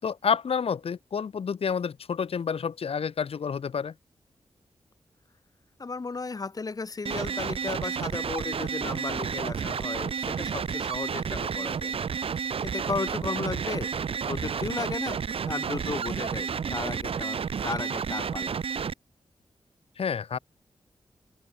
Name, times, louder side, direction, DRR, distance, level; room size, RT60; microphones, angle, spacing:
voice 1, 0.0-3.9 20.0-20.4, left 6 dB, 75° left, 6.7 m, -29 dB
voice 2, 5.8-11.9 12.4-13.9 14.2-15.2 15.5-18.6, left 4 dB, 40° left, 5.6 m, -35 dB
sound 1, 7.1-18.9, right 6 dB, 70° right, 1.6 m, -31 dB
wide cardioid pair, 130°, 10 cm